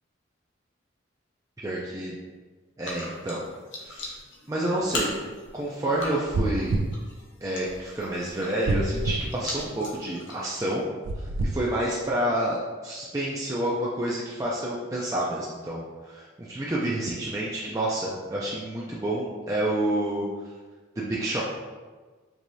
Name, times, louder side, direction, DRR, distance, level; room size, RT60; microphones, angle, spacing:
voice 1, 1.6-2.2 2.8-3.4 3.8-4.2 4.5-5.1 5.5-6.8 7.4-10.9 11.2-12.6 12.8-20.3 21.0-21.4, right 1 dB, 15° right, -6 dB, 0.4 m, -29 dB
sound 1, 2.8-10.8, left 2 dB, 70° left, 0.9 m, -39 dB
sound 2, 6.3-6.9 8.6-9.2 11.0-11.5, right 2 dB, 85° right, 0.4 m, -26 dB
4.6 x 3.1 x 2.6 m, 1.3 s
head